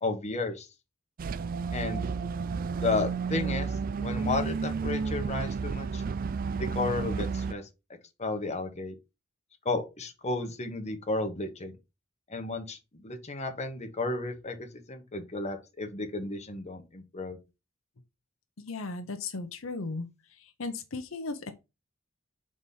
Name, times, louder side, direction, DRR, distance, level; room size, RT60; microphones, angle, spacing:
voice 1, 0.0-0.7 1.7-2.0 2.8-3.7 4.0-6.0 6.6-7.7 8.2-8.9 9.6-11.7 12.3-17.4, left 3 dB, 35° left, 1.3 m, -33 dB
sound 1, 1.2-7.5, right 5 dB, 45° right, 0.3 m, -32 dB
voice 2, 18.6-20.1 20.4-21.5, left 3 dB, 80° left, 0.8 m, -36 dB
4.9 x 4.2 x 5.5 m
head